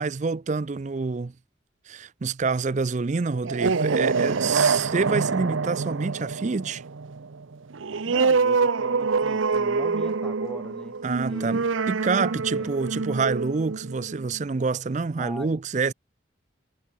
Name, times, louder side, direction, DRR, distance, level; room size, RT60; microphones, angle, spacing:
voice 1, 0.0-1.3 1.9-6.8 11.0-15.9, right 4 dB, 35° right, 0.4 m, -27 dB
sound 1, 3.3-14.5, right 4 dB, 80° right, 0.7 m, -26 dB
voice 2, 8.0-11.0 11.3-11.7 12.5-12.9 15.2-15.6, equal, 5° left, 4.7 m, -40 dB
head